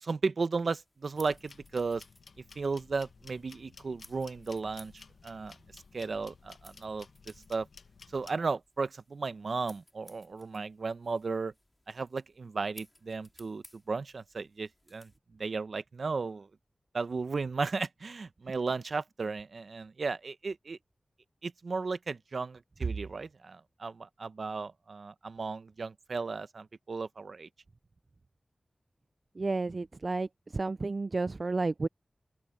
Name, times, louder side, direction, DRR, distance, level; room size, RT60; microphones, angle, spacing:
voice 1, 0.0-2.0 2.5-5.5 5.9-7.1 7.5-7.7 8.1-11.5 11.9-16.5 16.9-20.8 21.4-27.5, right 4 dB, 70° right, 0.9 m, -35 dB
sound 1, 0.6-15.2, left 1 dB, 20° left, 4.2 m, -60 dB
sound 2, 1.2-8.4, left 4 dB, 90° left, 0.8 m, -55 dB
voice 2, 29.4-30.3 30.5-31.9, right 3 dB, 50° right, 0.3 m, -31 dB
open air
wide cardioid pair, 65°, 0 cm